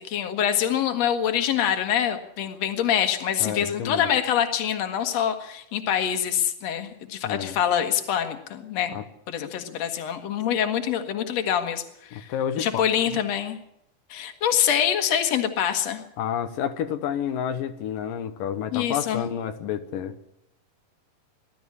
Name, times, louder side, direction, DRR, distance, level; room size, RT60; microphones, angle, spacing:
voice 1, 0.0-8.9 9.3-11.8 12.1-12.3 12.6-13.6 14.1-16.0 18.7-19.2, left 9 dB, 55° left, 6 dB, 2.7 m, -25 dB
voice 2, 3.4-4.1 7.2-7.6 8.9-9.0 12.1-12.8 13.1-13.2 16.2-20.1, left 9 dB, 85° left, 8 dB, 2.8 m, -30 dB
21.5 x 12.5 x 9.7 m, 0.78 s
omnidirectional pair, 3.8 m